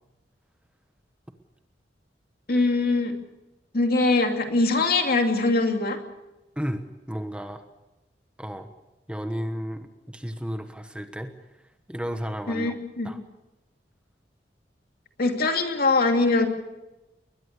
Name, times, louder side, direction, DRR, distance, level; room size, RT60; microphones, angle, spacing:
voice 1, 2.5-3.1 3.7-6.0 12.5-13.1 15.2-16.5, left 3 dB, 60° left, 4 dB, 2.5 m, -22 dB
voice 2, 6.6-7.6 8.4-8.7 9.1-11.3 11.9-12.8 13.0-13.2, equal, 5° right, 7 dB, 1.2 m, -33 dB
21.5 x 21.0 x 6.7 m, 1.0 s
head